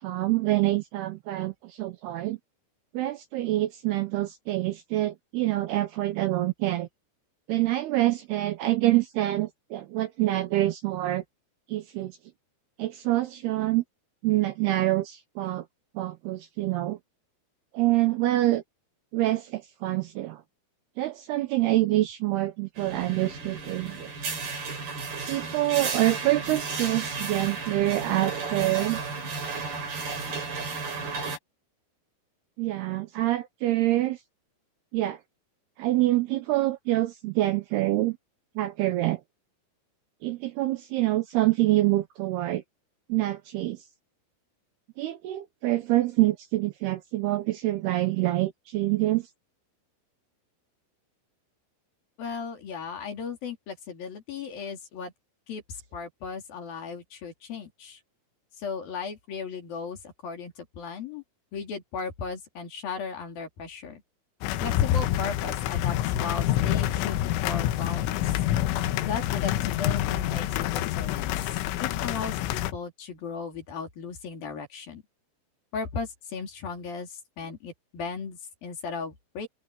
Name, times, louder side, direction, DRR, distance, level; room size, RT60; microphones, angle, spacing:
voice 1, 0.0-2.4 2.9-6.9 7.5-11.2 11.7-12.2 12.8-13.8 14.2-15.6 16.0-17.0 17.7-18.6 19.1-20.4 21.0-24.1 25.3-29.0 32.6-34.2 34.9-35.2 35.8-38.2 38.6-39.2 40.2-42.6 43.1-43.8 45.0-49.3, right 16 dB, 80° right, 2.5 m, -26 dB
sound 1, 22.8-31.4, right 4 dB, 55° right, 7.8 m, -33 dB
voice 2, 52.2-55.1 55.5-58.0 58.6-61.2 61.5-64.0 64.6-67.2 67.4-68.2 69.0-71.3 71.8-75.0 75.7-79.5, left 5 dB, 50° left, 4.6 m, -36 dB
sound 2, 64.4-72.7, left 13 dB, 90° left, 3.6 m, -27 dB
omnidirectional pair, 5.5 m